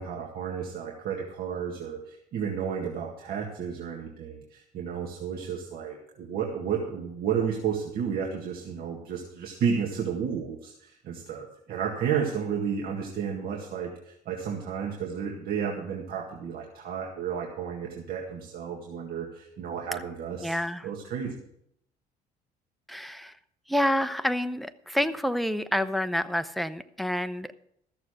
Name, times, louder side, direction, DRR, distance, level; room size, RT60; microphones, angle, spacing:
voice 1, 0.0-20.6 20.8-21.4, right 7 dB, 65° right, 0 dB, 1.9 m, -32 dB
voice 2, 20.4-20.9 22.9-23.3 23.7-27.5, left 1 dB, ahead, 10 dB, 0.6 m, -28 dB
14.0 x 6.8 x 6.6 m, 0.75 s
cardioid pair, 110°, 17 cm